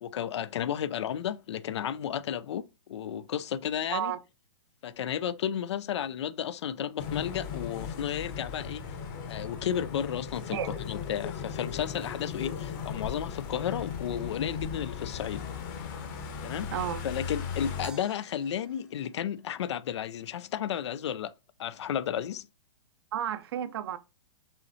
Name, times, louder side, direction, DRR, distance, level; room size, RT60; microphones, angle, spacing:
voice 1, 0.0-4.1 4.8-8.8 9.3-15.5 16.4-21.3 21.6-22.5, left 9 dB, 75° left, 0.4 m, -33 dB
sound 1, 7.0-17.9, left 7 dB, 45° left, 1.0 m, -37 dB
voice 2, 16.7-17.0 23.1-24.0, right 10 dB, 60° right, 0.6 m, -32 dB
sound 2, 17.8-20.2, right 2 dB, 5° right, 0.5 m, -50 dB
5.5 x 3.1 x 2.7 m
hypercardioid pair, 145°, 15 cm